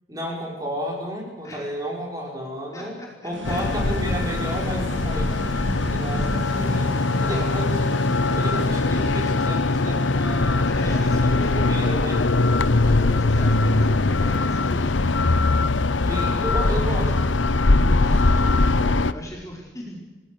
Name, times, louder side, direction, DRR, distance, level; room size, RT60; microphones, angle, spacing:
voice 1, 0.1-3.0 3.2-6.9 7.2-7.9 8.4-12.3 16.0-17.3 17.9-18.6, equal, 20° right, -1 dB, 5.6 m, -32 dB
voice 2, 2.7-3.8 7.1-7.6 10.6-12.0 12.8-15.0 17.8-20.0, equal, 15° left, -2 dB, 4.8 m, -39 dB
sound 1, 3.3-9.9, right 1 dB, 80° right, 3.2 m, -35 dB
sound 2, 3.4-19.1, left 2 dB, 85° left, 1.0 m, -21 dB
30.0 x 18.5 x 6.8 m, 1.2 s
head